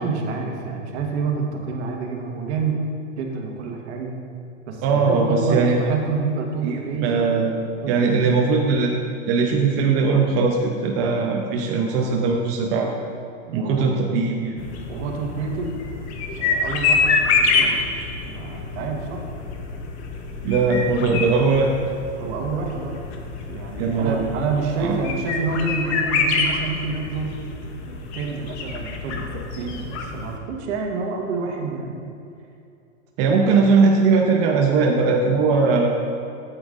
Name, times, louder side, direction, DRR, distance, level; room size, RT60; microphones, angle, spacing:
voice 1, 0.0-2.8 3.2-4.1 4.7-7.3 7.8-8.3 13.5-13.9 14.9-15.9 16.4-17.7 18.2-19.2 22.1-23.0 23.5-27.5 27.9-32.1 33.4-33.5, right 4 dB, 65° right, 1 dB, 1.4 m, -28 dB
voice 2, 4.8-5.8 6.6-8.9 9.3-12.9 13.5-14.6 20.4-21.8 23.8-24.3 24.8-25.0 33.2-35.9, right 4 dB, 40° right, 0 dB, 0.7 m, -20 dB
sound 1, 14.6-30.4, left 4 dB, 60° left, 1.1 m, -26 dB
9.1 x 8.1 x 2.6 m, 2.6 s
hypercardioid pair, 125°, 37 cm